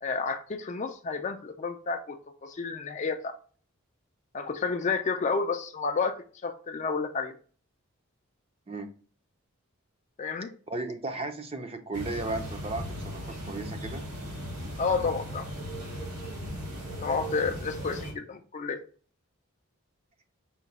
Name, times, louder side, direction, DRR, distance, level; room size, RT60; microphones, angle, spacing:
voice 1, 0.0-3.3 4.3-6.2 6.4-7.4 10.2-10.5 14.8-15.5 17.0-18.8, left 4 dB, 35° left, 0.4 m, -30 dB
voice 2, 10.7-14.0, right 2 dB, 25° right, 0.5 m, -35 dB
sound 1, 11.9-18.1, equal, 80° right, 2.4 m, -37 dB
5.7 x 2.2 x 4.0 m
head